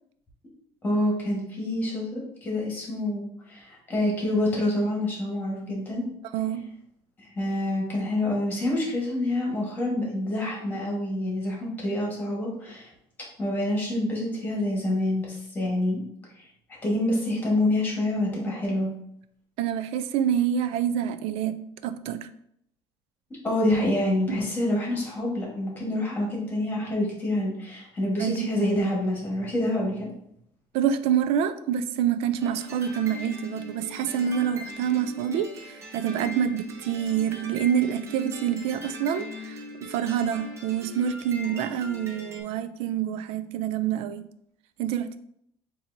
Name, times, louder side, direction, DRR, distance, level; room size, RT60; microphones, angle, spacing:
voice 1, 0.8-6.0 7.2-12.9 13.4-16.0 16.4-16.5 16.8-18.9 23.4-30.1, left 1 dB, 20° left, -3 dB, 1.4 m, -27 dB
voice 2, 6.3-6.7 19.6-22.3 24.3-24.4 28.2-28.5 30.7-44.3 44.8-45.2, right 9 dB, 65° right, 12 dB, 0.4 m, -27 dB
sound 1, 32.4-42.4, left 1 dB, 25° right, 0.8 m, -40 dB
7.0 x 2.7 x 2.6 m, 0.72 s
cardioid pair, 165°, 11 cm